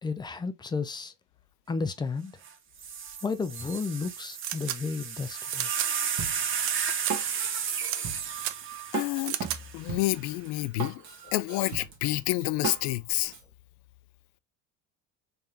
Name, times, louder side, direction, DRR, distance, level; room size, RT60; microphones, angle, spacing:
voice 1, 0.0-1.1 1.7-2.3 3.2-5.7, left 4 dB, 10° left, 0.4 m, -32 dB
sound 1, 2.4-2.5 2.8-10.2 11.1-11.5, right 7 dB, 35° right, 0.7 m, -33 dB
sound 2, 4.4-4.8 5.5-5.9 6.6-6.7 7.0-7.1 7.8-8.0 8.4-8.5 9.3-9.6, right 13 dB, 85° right, 0.6 m, -33 dB
Drum kit, 6.2-13.4, right 5 dB, 50° right, 1.4 m, -37 dB
voice 2, 8.9-9.4 9.7-13.3, left 19 dB, 75° left, 0.5 m, -29 dB
3.8 x 3.3 x 2.7 m
cardioid pair, 130°, 38 cm